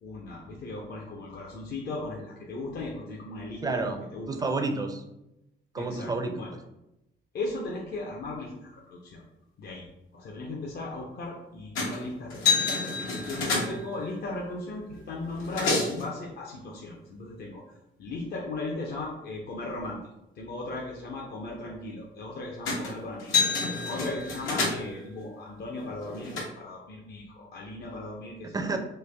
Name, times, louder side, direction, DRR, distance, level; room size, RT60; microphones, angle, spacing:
voice 1, 0.0-4.5 5.8-6.5 7.3-9.2 9.6-9.9 10.1-12.8 13.2-20.0 20.3-28.5, left 2 dB, 55° left, -2 dB, 0.6 m, -37 dB
voice 2, 3.6-4.0 4.3-5.0 5.7-6.4 28.5-28.8, right 3 dB, 20° right, 6 dB, 0.4 m, -29 dB
sound 1, 11.8-12.0 12.3-13.9 14.9-15.0 15.3-16.0 22.7-22.9 23.2-25.0 25.8-26.4, left 4 dB, 90° left, 1.0 m, -28 dB
3.2 x 2.1 x 3.3 m, 0.91 s
cardioid pair, 90°, 20 cm